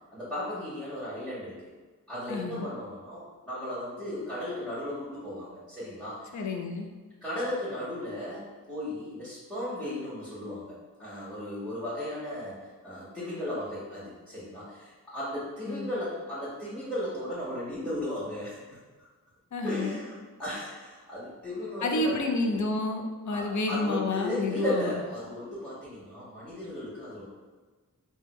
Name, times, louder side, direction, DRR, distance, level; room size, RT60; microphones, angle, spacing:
voice 1, 0.1-1.6 2.1-6.4 7.2-18.6 19.6-22.2 23.3-27.2, left 1 dB, ahead, -10 dB, 1.2 m, -35 dB
voice 2, 2.3-2.7 6.3-6.9 15.7-15.9 19.5-20.0 21.8-25.0, left 2 dB, 55° left, 3 dB, 0.5 m, -30 dB
3.3 x 2.2 x 3.0 m, 1.3 s
cardioid pair, 45°, 34 cm